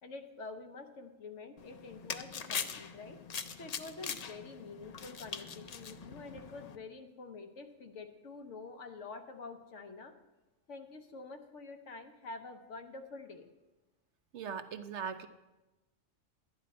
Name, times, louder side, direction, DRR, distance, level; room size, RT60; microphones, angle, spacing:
voice 1, 0.0-3.2 3.6-10.1 10.7-13.5, left 3 dB, 70° left, 6 dB, 1.2 m, -47 dB
sound 1, 1.6-6.8, left 6 dB, 85° left, 0.3 m, -42 dB
voice 2, 14.3-15.3, right 6 dB, 65° right, 10 dB, 0.8 m, -39 dB
11.5 x 10.0 x 4.2 m, 1.1 s
omnidirectional pair, 1.3 m